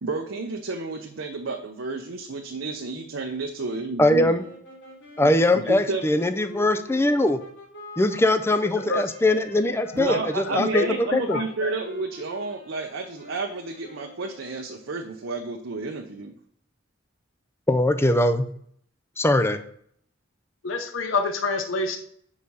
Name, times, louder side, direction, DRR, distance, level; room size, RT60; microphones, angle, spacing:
voice 1, 0.0-4.4 5.2-6.1 9.9-16.3, right 3 dB, 75° right, 2 dB, 0.8 m, -31 dB
voice 2, 4.0-4.4 5.2-7.4 8.0-11.4 17.7-18.5 19.2-19.6, left 1 dB, 15° left, 9 dB, 0.5 m, -21 dB
Sax Alto - C minor, 4.3-15.1, left 2 dB, 65° left, 3.1 m, -45 dB
voice 3, 9.6-10.2 10.5-10.9 11.3-11.7 20.6-22.0, left 3 dB, 85° left, 6 dB, 0.8 m, -28 dB
6.3 x 5.0 x 5.5 m, 0.64 s
head